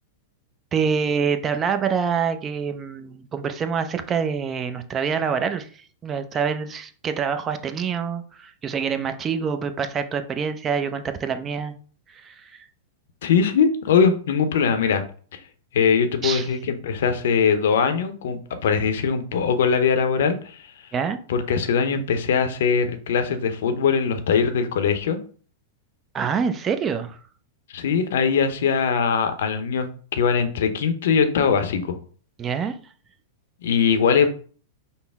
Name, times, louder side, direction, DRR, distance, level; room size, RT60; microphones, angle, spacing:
voice 1, 0.7-11.7 12.1-12.6 16.2-16.5 20.9-21.2 26.1-27.2 32.4-32.8, right 6 dB, 25° right, 0.5 m, -26 dB
voice 2, 13.2-15.0 15.3-15.4 15.7-20.7 21.3-25.2 27.7-29.9 30.1-32.0 33.6-34.3, left 6 dB, 70° left, 0.7 m, -21 dB
5.4 x 2.1 x 3.5 m
hypercardioid pair, 105°, 0 cm